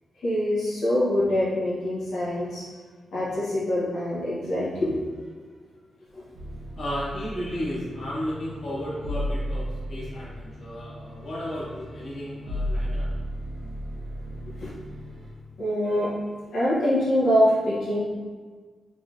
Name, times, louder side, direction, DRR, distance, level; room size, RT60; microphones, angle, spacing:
voice 1, 0.2-2.6 3.1-5.0 6.1-6.2 14.6-14.7 15.6-16.1 16.5-18.0, left 1 dB, 85° left, -9 dB, 1.1 m, -24 dB
voice 2, 2.4-2.7 6.8-13.1, equal, 45° left, -9 dB, 1.1 m, -34 dB
sound 1, 6.3-15.3, equal, 55° right, 0.7 m, -34 dB
3.4 x 3.4 x 2.8 m, 1.5 s
wide cardioid pair, 180°, 0 cm